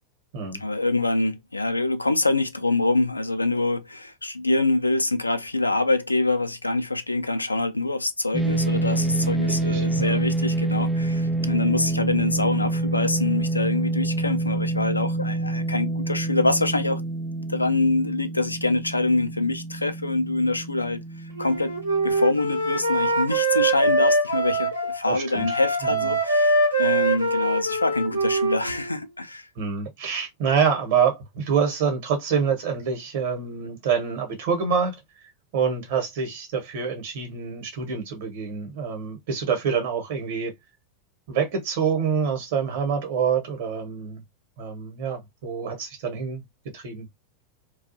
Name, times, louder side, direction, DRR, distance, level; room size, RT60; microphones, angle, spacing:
voice 1, 0.6-17.0 17.5-21.0 21.4-21.7 22.0-29.5, left 2 dB, 85° left, 0.3 m, -25 dB
sound 1, 8.3-22.8, right 2 dB, ahead, 0.4 m, -27 dB
voice 2, 9.5-10.2 25.1-26.1 29.6-35.0 35.5-40.5 41.3-44.2 44.6-46.4 46.7-47.1, right 6 dB, 50° right, 1.0 m, -26 dB
Wind instrument woodwind instrument, 21.4-25.0 25.3-29.0, right 2 dB, 85° right, 0.7 m, -23 dB
2.4 x 2.2 x 2.6 m
figure-of-eight pair, 90°, 0 cm